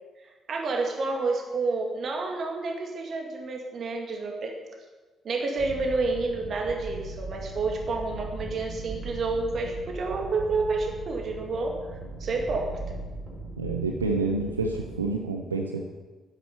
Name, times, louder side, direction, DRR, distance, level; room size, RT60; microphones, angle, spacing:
voice 1, 0.5-4.6 5.2-11.8 12.2-13.0, right 3 dB, 45° right, 2 dB, 2.1 m, -29 dB
sound 1, 5.6-15.2, right 2 dB, 20° right, 4.4 m, -39 dB
voice 2, 13.6-15.8, right 3 dB, 85° right, 3 dB, 0.8 m, -28 dB
12.0 x 9.7 x 6.8 m, 1.3 s
figure-of-eight pair, 45°, 0 cm